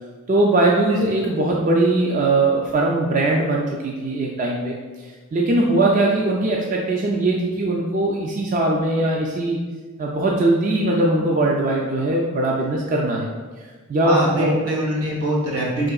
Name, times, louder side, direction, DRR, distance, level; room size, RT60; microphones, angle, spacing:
voice 1, 0.3-4.8 5.3-9.6 10.0-13.3 13.9-14.6, right 2 dB, 35° right, -2 dB, 0.3 m, -20 dB
voice 2, 14.0-15.9, right 1 dB, 80° right, -4 dB, 1.2 m, -23 dB
5.0 x 3.7 x 2.3 m, 1.4 s
head